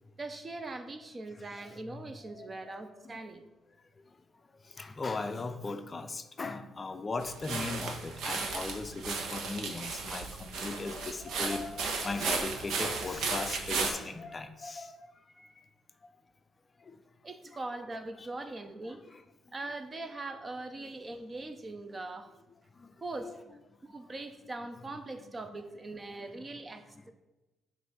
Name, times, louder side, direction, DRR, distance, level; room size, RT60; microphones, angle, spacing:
voice 1, 0.2-3.4 17.2-19.0 19.5-22.3 23.0-23.4 23.8-27.1, right 2 dB, 30° right, 8 dB, 0.6 m, -41 dB
voice 2, 1.6-2.0 2.3-2.5 3.0-3.2 4.6-15.6 16.8-17.0 18.2-18.3 18.9-19.0 20.8-20.9 22.7-23.0 23.2-23.3 25.5-25.6 26.3-26.4, left 3 dB, 30° left, 8 dB, 0.4 m, -38 dB
sound 1, 7.2-13.9, right 4 dB, 80° right, 0.9 m, -35 dB
7.8 x 2.6 x 5.5 m, 1.1 s
cardioid pair, 90°, 0 cm